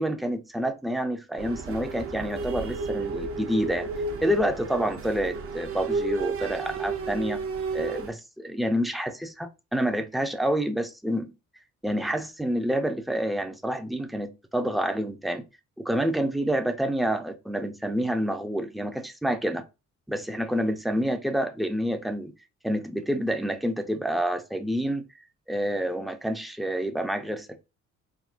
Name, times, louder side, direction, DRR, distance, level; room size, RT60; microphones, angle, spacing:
voice 1, 0.0-3.9 4.2-7.4 7.7-11.3 11.8-15.4 15.8-19.6 20.1-22.3 22.6-25.0 25.5-27.6, equal, ahead, 0.4 m, -28 dB
sound 1, 1.4-8.1, right 4 dB, 45° right, 0.6 m, -32 dB
3.6 x 2.0 x 2.4 m
cardioid pair, 90°, 30 cm